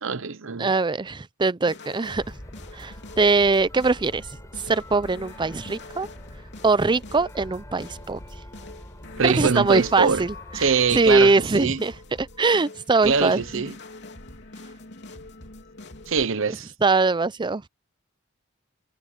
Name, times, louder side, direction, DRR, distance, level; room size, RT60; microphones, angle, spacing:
voice 1, 0.0-0.7 9.2-10.3 10.5-11.8 13.0-13.7 16.1-16.7, right 5 dB, 70° right, 0.9 m, -23 dB
voice 2, 0.6-2.2 2.7-4.3 4.7-6.1 6.6-8.2 9.2-11.9 12.2-13.6 16.8-17.7, right 3 dB, 25° right, 0.5 m, -22 dB
sound 1, 1.7-16.3, left 2 dB, 60° left, 3.3 m, -44 dB
sound 2, 2.2-11.3, equal, 15° left, 7.2 m, -44 dB
head